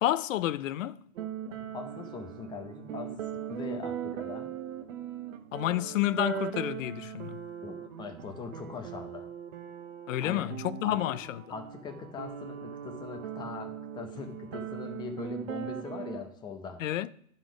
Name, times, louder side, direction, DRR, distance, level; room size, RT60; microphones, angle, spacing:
voice 1, 0.0-1.0 5.5-7.4 10.1-11.4 16.8-17.1, left 13 dB, 65° left, 0.5 m, -30 dB
sound 1, 1.2-16.2, right 9 dB, 60° right, 1.1 m, -39 dB
voice 2, 1.5-4.6 7.6-9.3 10.2-10.5 10.8-11.0 11.5-16.8, left 5 dB, 10° left, 0.5 m, -41 dB
11.5 x 4.1 x 4.9 m
hypercardioid pair, 135°, 43 cm